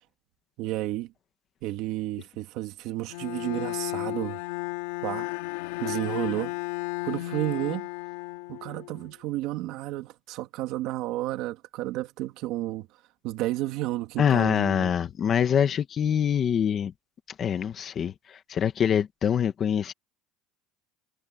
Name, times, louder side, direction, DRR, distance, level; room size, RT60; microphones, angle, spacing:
voice 1, 0.6-1.1 1.6-4.4 5.0-5.3 5.8-6.6 7.0-7.9 8.5-12.9 13.2-14.9, right 16 dB, 50° right, 2.3 m, -31 dB
Bowed string instrument, 3.1-9.1, left 21 dB, 90° left, 2.0 m, -34 dB
voice 2, 14.2-16.9 17.4-18.1 18.5-19.9, left 8 dB, 25° left, 1.3 m, -24 dB
cardioid pair, 180°, 0 cm